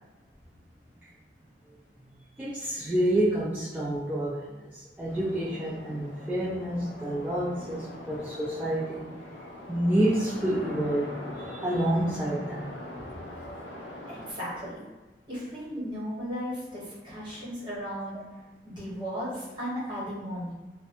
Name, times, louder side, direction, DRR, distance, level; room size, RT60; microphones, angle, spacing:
voice 1, 2.4-9.1 9.7-12.7 13.4-13.6 13.8-13.9, right 1 dB, 10° right, -8 dB, 0.3 m, -28 dB
sound 1, 5.1-14.3, left 1 dB, 85° left, 0.5 m, -42 dB
voice 2, 14.1-14.8 15.3-20.5, equal, 25° right, -7 dB, 1.0 m, -36 dB
2.8 x 2.1 x 2.5 m, 1.2 s
head